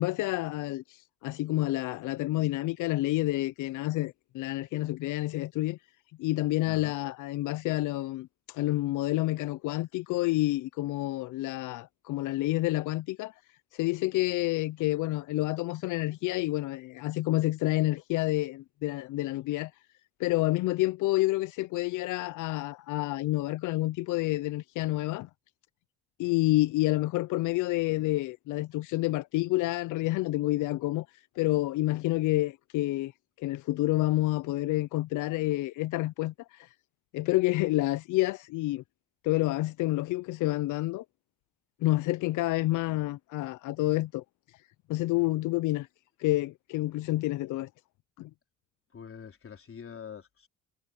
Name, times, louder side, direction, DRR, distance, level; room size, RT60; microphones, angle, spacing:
voice 1, 0.0-5.8 6.2-13.3 13.7-19.7 20.2-25.3 26.2-31.1 31.4-33.1 33.4-36.7 37.1-38.8 39.2-41.0 41.8-44.2 44.9-45.9 46.2-47.7 48.2-48.3, left 18 dB, 85° left, 0.5 m, -29 dB
voice 2, 6.7-7.0 48.9-50.5, left 7 dB, 45° left, 3.6 m, -45 dB
cardioid pair, 90°, 30 cm